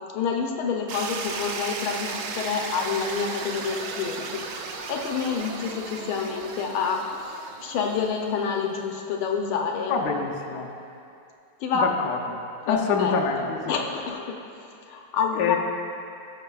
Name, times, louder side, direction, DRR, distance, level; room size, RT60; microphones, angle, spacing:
voice 1, 0.1-4.4 4.7-9.9 11.6-11.9 12.7-14.4 14.9-15.6, left 6 dB, 80° left, 1 dB, 1.6 m, -28 dB
sound 1, 0.9-8.9, right 4 dB, 75° right, 1.4 m, -35 dB
voice 2, 9.9-10.7 11.8-12.2 12.7-13.7 15.4-15.6, left 5 dB, 60° left, 0 dB, 1.2 m, -25 dB
17.0 x 6.5 x 2.3 m, 2.6 s
omnidirectional pair, 2.3 m